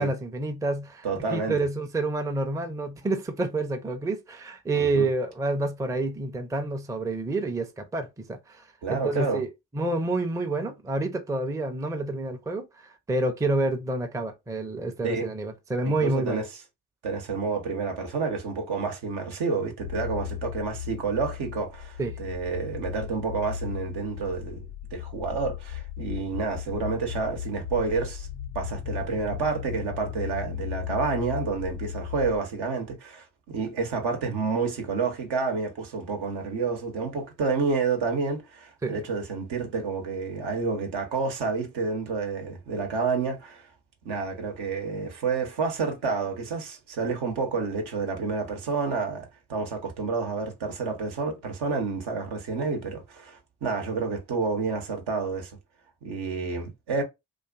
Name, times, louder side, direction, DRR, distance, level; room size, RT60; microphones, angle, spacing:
voice 1, 0.0-1.1 1.3-8.6 8.9-16.4 22.0-22.2 38.8-39.0, right 2 dB, 10° right, 0.5 m, -28 dB
voice 2, 1.0-1.6 4.7-5.1 8.8-9.4 15.0-15.3 15.8-16.5 17.0-28.3 28.5-43.7 44.0-55.5 56.0-57.0, right 4 dB, 70° right, 0.8 m, -29 dB
sound 1, 19.8-32.4, left 10 dB, 85° left, 0.8 m, -36 dB
2.4 x 2.3 x 2.3 m
hypercardioid pair, 40°, 42 cm